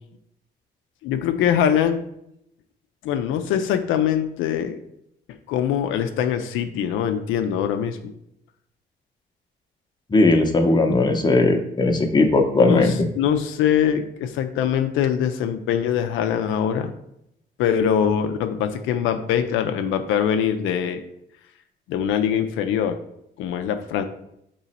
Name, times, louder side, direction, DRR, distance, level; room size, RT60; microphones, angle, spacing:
voice 1, 1.0-2.0 3.0-4.8 5.5-8.0 12.6-16.9 17.6-21.0 21.9-23.0 23.4-24.1, left 9 dB, 90° left, 7 dB, 0.4 m, -23 dB
voice 2, 10.1-12.9, left 2 dB, 20° left, 4 dB, 0.7 m, -18 dB
3.9 x 3.0 x 4.1 m, 0.78 s
cardioid pair, 90°, 20 cm